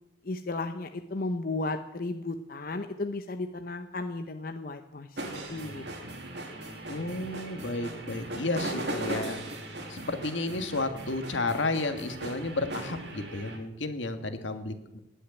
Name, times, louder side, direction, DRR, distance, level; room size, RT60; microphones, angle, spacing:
voice 1, 0.2-5.8, left 2 dB, 50° left, 7 dB, 0.8 m, -34 dB
sound 1, 5.2-13.6, right 1 dB, 60° right, 2.7 m, -38 dB
voice 2, 6.9-9.4 9.9-15.0, left 2 dB, 80° left, 7 dB, 1.6 m, -32 dB
19.0 x 6.4 x 9.3 m, 0.93 s
head